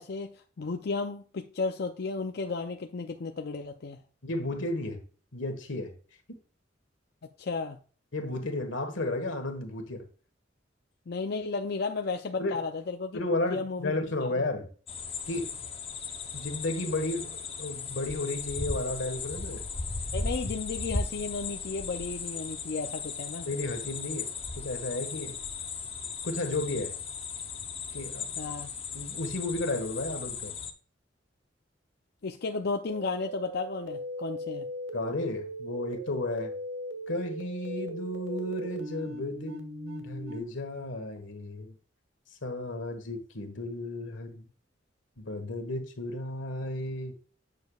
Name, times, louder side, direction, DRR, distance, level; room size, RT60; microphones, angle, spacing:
voice 1, 0.0-4.0 7.4-7.8 11.1-13.2 13.5-13.9 14.3-14.5 20.1-23.5 28.4-28.7 32.2-34.7, left 4 dB, 60° left, 0.5 m, -33 dB
voice 2, 4.2-5.0 5.3-5.9 6.3-6.4 8.1-10.0 12.4-12.6 13.1-14.7 15.3-15.5 16.3-19.6 23.5-24.3 24.6-25.4 26.2-26.9 27.9-28.3 28.9-30.5 34.9-36.5 37.1-41.7 42.4-44.5 45.2-47.1, left 2 dB, 90° left, 1.5 m, -33 dB
sound 1, 14.9-30.7, left 4 dB, 30° left, 0.8 m, -37 dB
sound 2, 32.9-40.4, equal, 75° right, 1.2 m, -39 dB
8.3 x 6.6 x 2.3 m
head